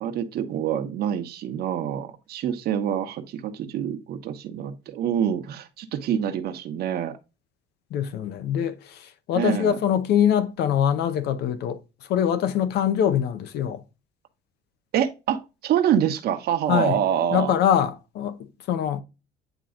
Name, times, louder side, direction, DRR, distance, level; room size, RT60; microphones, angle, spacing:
voice 1, 0.0-7.2 9.3-9.8 14.9-17.5, right 9 dB, 70° right, 1.1 m, -26 dB
voice 2, 7.9-11.8 12.1-13.8 16.7-17.0 17.3-19.0, left 9 dB, 75° left, 0.9 m, -23 dB
9.1 x 3.0 x 3.7 m
cardioid pair, 110°, 17 cm